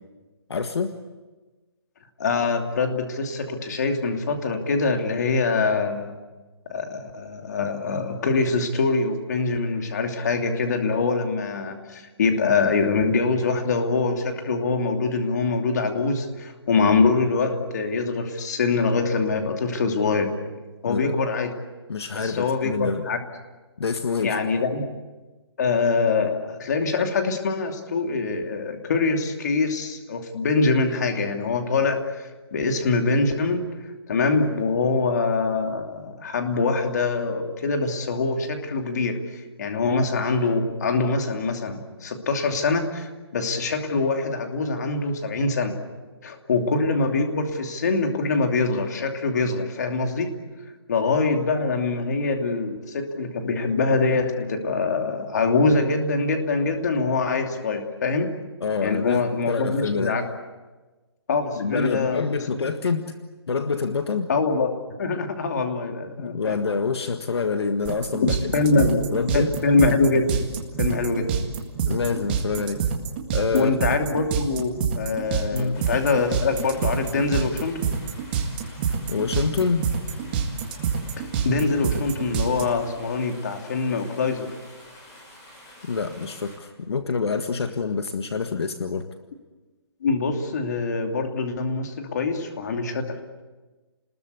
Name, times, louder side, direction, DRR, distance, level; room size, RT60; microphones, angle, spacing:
voice 1, 0.5-1.0 20.9-21.0 21.9-23.0 23.8-24.4 58.6-60.1 61.6-63.1 63.5-64.3 66.2-68.3 68.7-69.5 71.8-72.8 73.3-73.7 75.5-75.8 79.1-79.9 85.8-89.0, left 5 dB, 65° left, 7 dB, 1.7 m, -26 dB
voice 2, 2.2-6.1 6.7-20.4 20.8-21.5 22.1-23.2 24.2-24.8 25.6-32.1 32.5-33.7 34.1-45.8 46.2-50.3 50.9-58.3 58.8-60.2 61.3-62.2 64.3-64.7 65.0-66.6 68.2-69.0 69.3-70.5 70.8-71.3 73.5-77.9 81.2-84.5 90.0-93.2, left 4 dB, 40° left, 4 dB, 2.8 m, -24 dB
sound 1, 67.8-82.6, right 6 dB, 20° right, 1.8 m, -26 dB
sound 2, 75.7-86.6, left 1 dB, 15° left, 5.3 m, -48 dB
29.5 x 20.5 x 8.2 m, 1.2 s
hypercardioid pair, 175°, 14 cm